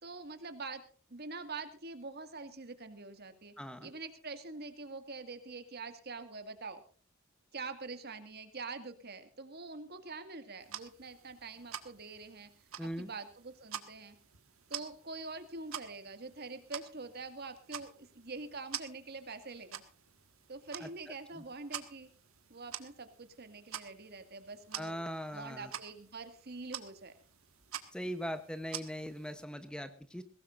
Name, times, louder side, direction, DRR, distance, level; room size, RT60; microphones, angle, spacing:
voice 1, 0.0-0.8 1.1-3.5 3.8-6.8 7.5-12.5 12.8-14.2 14.7-19.8 20.5-22.1 22.5-24.9 25.3-27.1, right 3 dB, 50° right, 9 dB, 2.0 m, -45 dB
voice 2, 3.6-3.9 12.8-13.1 20.8-21.4 24.7-25.7 27.9-30.2, equal, 5° left, 9 dB, 0.8 m, -41 dB
sound 1, 10.6-29.4, right 9 dB, 80° right, 1.6 m, -48 dB
21.5 x 17.5 x 2.5 m, 0.40 s
head